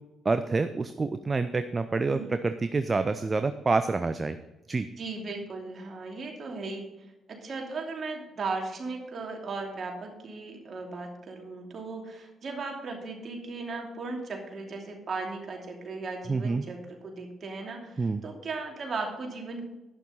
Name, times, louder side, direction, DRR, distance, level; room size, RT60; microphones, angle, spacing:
voice 1, 0.2-4.4 4.7-4.9 16.3-16.6 18.0-18.2, right 3 dB, 30° right, 10 dB, 0.7 m, -27 dB
voice 2, 5.0-6.9 7.3-19.7, right 3 dB, 45° right, 1 dB, 2.8 m, -37 dB
11.5 x 10.0 x 4.0 m, 1.0 s
figure-of-eight pair, 40°, 0 cm